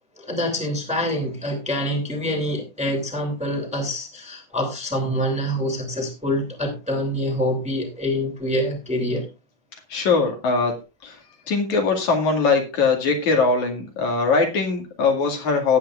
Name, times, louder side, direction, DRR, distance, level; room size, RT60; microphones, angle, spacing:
voice 1, 0.2-9.3, equal, ahead, 2 dB, 2.5 m, -26 dB
voice 2, 9.9-10.7 11.0-11.2 11.5-15.8, left 4 dB, 65° left, 2 dB, 3.5 m, -21 dB
18.0 x 8.9 x 2.5 m, 0.27 s
omnidirectional pair, 3.7 m